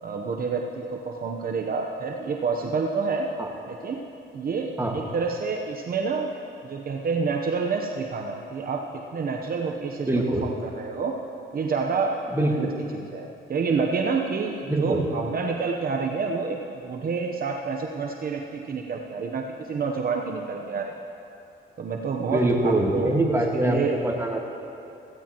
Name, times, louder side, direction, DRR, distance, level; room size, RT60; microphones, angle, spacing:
voice 1, 0.0-3.3 3.7-4.0 4.3-6.3 6.6-8.8 9.1-10.1 10.4-11.2 11.5-12.2 12.5-20.9 21.8-23.1 23.5-23.9, right 5 dB, 50° right, 2 dB, 0.9 m, -28 dB
voice 2, 10.1-10.4 12.3-12.7 14.7-15.1 22.3-24.4, right 1 dB, 15° right, 0 dB, 1.8 m, -23 dB
16.0 x 15.5 x 3.0 m, 2.7 s
cardioid pair, 90°, 20 cm